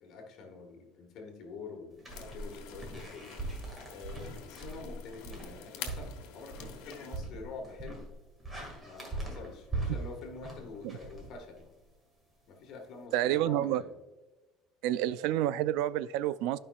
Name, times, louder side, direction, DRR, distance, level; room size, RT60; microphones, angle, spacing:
voice 1, 0.0-3.4 3.9-8.1 8.8-11.7 12.5-14.0, left 4 dB, 50° left, 1.5 m, -46 dB
sound 1, 2.0-11.8, right 2 dB, 15° right, 1.8 m, -41 dB
sound 2, 2.1-7.2, left 8 dB, 85° left, 1.2 m, -48 dB
voice 2, 13.1-13.8 14.8-16.6, right 13 dB, 70° right, 0.3 m, -29 dB
12.0 x 5.3 x 2.3 m
cardioid pair, 160°, 0 cm